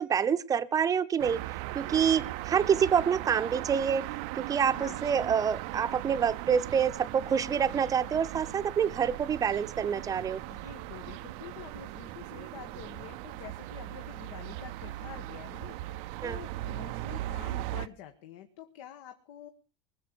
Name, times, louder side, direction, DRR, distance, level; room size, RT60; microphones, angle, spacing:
voice 1, 0.0-4.0 4.3-10.4 16.2-16.4, right 7 dB, 25° right, 11 dB, 0.8 m, -27 dB
sound 1, 1.2-17.9, right 17 dB, 60° right, 0.6 m, -38 dB
voice 2, 10.5-19.5, left 10 dB, 70° left, 6 dB, 1.5 m, -47 dB
20.5 x 7.4 x 6.9 m, 0.39 s
supercardioid pair, 130°, 15 cm